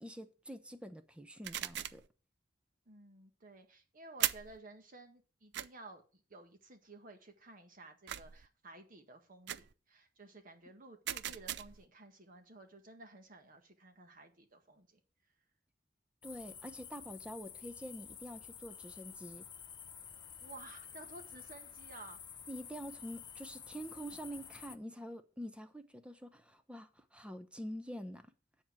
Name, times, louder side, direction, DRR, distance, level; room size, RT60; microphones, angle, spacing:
voice 1, 0.0-2.0 16.2-19.5 22.5-28.3, equal, 5° right, 0.8 m, -46 dB
sound 1, 1.4-2.1 4.2-4.6 5.5-5.7 8.1-8.5 9.5-9.7 11.1-11.9, right 12 dB, 65° right, 0.5 m, -38 dB
voice 2, 2.8-15.0 20.4-22.2, right 2 dB, 50° right, 1.7 m, -54 dB
sound 2, 16.2-24.8, left 8 dB, 25° left, 0.6 m, -51 dB
9.4 x 4.5 x 7.6 m
head